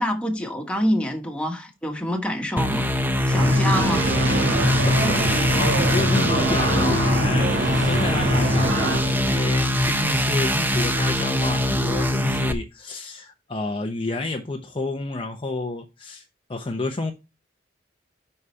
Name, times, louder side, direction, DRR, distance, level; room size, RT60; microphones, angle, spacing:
voice 1, 0.0-2.9 3.3-4.1, equal, 5° left, 1.3 m, -26 dB
sound 1, 2.6-12.5, left 1 dB, 10° right, 0.6 m, -22 dB
sound 2, 3.3-9.0, right 2 dB, 70° right, 1.8 m, -25 dB
voice 2, 4.8-16.2 16.5-17.1, left 2 dB, 30° left, 0.7 m, -30 dB
5.5 x 4.8 x 5.6 m
head